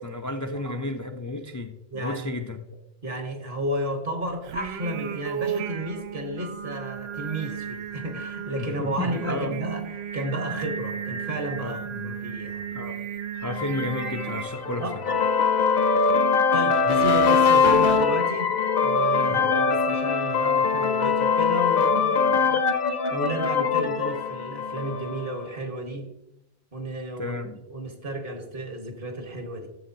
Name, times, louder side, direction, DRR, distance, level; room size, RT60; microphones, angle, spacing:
voice 1, 0.0-2.6 8.6-9.5 11.6-12.2 12.7-13.0 13.4-15.0 19.3-19.5 27.2-27.6, left 2 dB, 25° left, 3 dB, 0.4 m, -32 dB
voice 2, 1.9-2.3 3.0-12.6 14.8-15.2 16.5-18.6 18.8-22.6 23.1-26.1 26.7-27.4 27.7-29.7, right 1 dB, 55° right, 4 dB, 1.6 m, -32 dB
Singing, 4.4-14.4, right 8 dB, 75° right, 0.9 m, -34 dB
sound 1, 13.5-25.3, left 5 dB, 60° left, 1.0 m, -22 dB
12.5 x 7.2 x 2.8 m, 0.88 s
omnidirectional pair, 1.1 m